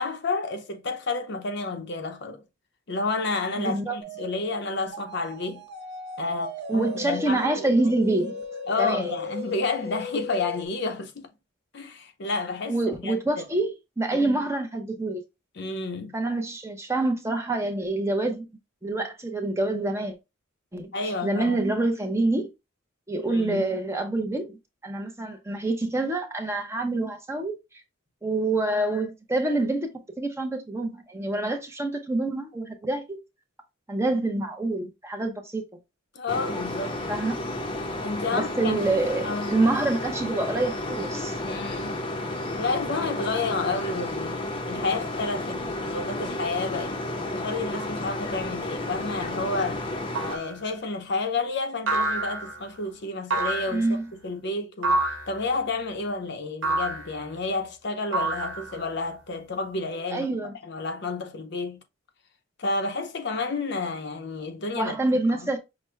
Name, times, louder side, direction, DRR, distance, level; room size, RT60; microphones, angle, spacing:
voice 1, 0.0-2.4 2.9-5.6 6.2-8.0 8.7-11.3 11.7-13.4 14.1-14.5 15.6-16.2 20.9-21.6 23.2-23.6 36.1-37.0 38.0-39.6 41.4-42.0 42.6-47.0 47.3-49.8 50.3-60.4 60.6-61.8 62.6-65.0 65.3-65.5, left 3 dB, 60° left, 0.7 m, -30 dB
voice 2, 3.6-4.0 6.7-8.4 8.8-9.1 12.7-15.2 16.1-18.5 18.8-20.1 20.7-20.9 21.2-22.5 23.1-24.6 24.8-27.5 28.2-33.2 33.9-35.6 37.1-37.4 38.3-41.4 53.7-54.0 60.1-60.5 64.7-65.6, right 2 dB, 15° right, 0.7 m, -26 dB
sound 1, 4.0-10.7, left 2 dB, 55° right, 1.1 m, -37 dB
sound 2, 36.3-50.4, left 1 dB, 25° left, 0.7 m, -32 dB
sound 3, 50.2-50.6 51.9-52.6 53.3-53.9 54.8-55.4 56.6-57.1 58.1-58.9, right 2 dB, 75° right, 1.3 m, -27 dB
5.9 x 2.2 x 3.2 m
head